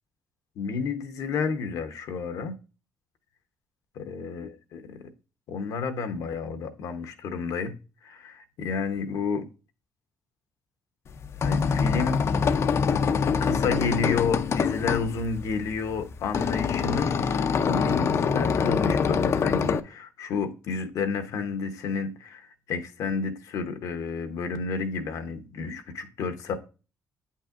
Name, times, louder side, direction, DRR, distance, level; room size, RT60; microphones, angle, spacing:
voice 1, 0.6-2.6 4.0-5.1 5.5-7.7 8.0-9.5 11.4-12.2 13.4-26.5, left 5 dB, 75° left, 0.9 m, -31 dB
sound 1, 11.1-19.8, left 6 dB, 50° left, 0.5 m, -25 dB
8.5 x 5.6 x 2.5 m
supercardioid pair, 75°, 6 cm